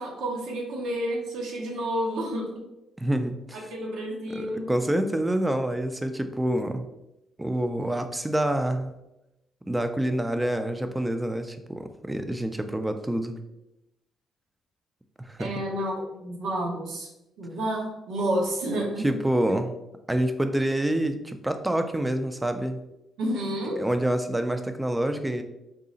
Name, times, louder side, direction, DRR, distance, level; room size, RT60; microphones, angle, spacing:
voice 1, 0.0-2.6 3.5-4.7 15.4-17.1 17.4-19.2 23.2-23.8, right 1 dB, 80° right, -1 dB, 0.9 m, -30 dB
voice 2, 3.0-3.6 4.3-6.9 7.4-8.9 9.7-13.3 15.2-15.5 19.0-19.8 20.1-22.8 23.8-25.4, right 1 dB, 10° right, 8 dB, 0.4 m, -27 dB
3.7 x 2.0 x 3.8 m, 0.91 s
cardioid pair, 90°, 0 cm